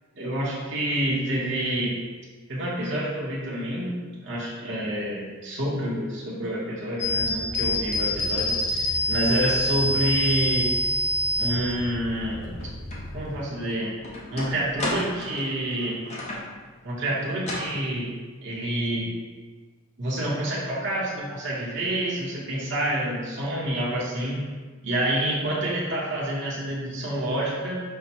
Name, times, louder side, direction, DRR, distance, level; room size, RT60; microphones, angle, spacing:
voice 1, 0.2-2.0 2.5-10.7 11.4-12.4 13.1-13.9 14.3-16.0 16.8-18.1 18.4-19.1 20.0-24.4 24.8-27.8, right 1 dB, 55° right, -5 dB, 0.9 m, -28 dB
sound 1, 7.0-13.4, left 1 dB, 75° left, 0.9 m, -26 dB
sound 2, 12.9-13.0 13.5-16.5 17.4-17.8, left 1 dB, 30° left, 0.7 m, -33 dB
5.6 x 2.1 x 4.2 m, 1.4 s
head